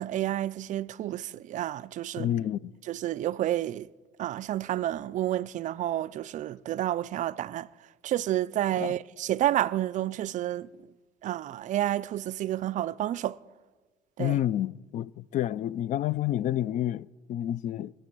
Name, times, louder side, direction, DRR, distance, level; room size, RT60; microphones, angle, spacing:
voice 1, 0.0-2.3 2.8-3.9 4.2-7.7 8.0-10.7 11.2-13.4 14.2-14.4, right 13 dB, 55° right, 0.4 m, -30 dB
voice 2, 2.2-2.7 8.8-8.9 14.2-17.9, left 12 dB, 55° left, 0.4 m, -29 dB
23.5 x 7.8 x 6.1 m
supercardioid pair, 90°, 15 cm